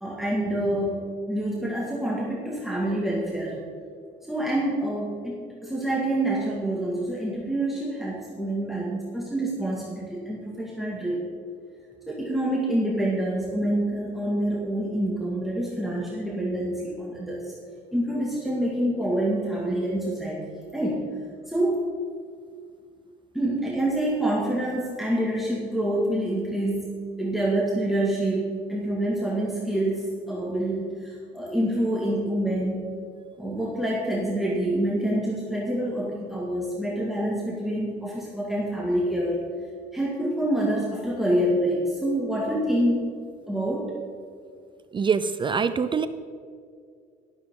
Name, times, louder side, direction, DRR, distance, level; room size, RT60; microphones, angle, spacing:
voice 1, 0.0-3.6 4.3-11.2 12.1-17.5 17.9-20.4 20.7-21.0 21.5-21.8 23.3-32.9 33.4-39.4 39.9-43.1 43.5-43.9, right 1 dB, ahead, -4 dB, 2.1 m, -27 dB
voice 2, 44.9-46.1, right 6 dB, 30° right, 12 dB, 0.5 m, -24 dB
12.5 x 12.5 x 3.8 m, 2.2 s
cardioid pair, 110°, 17 cm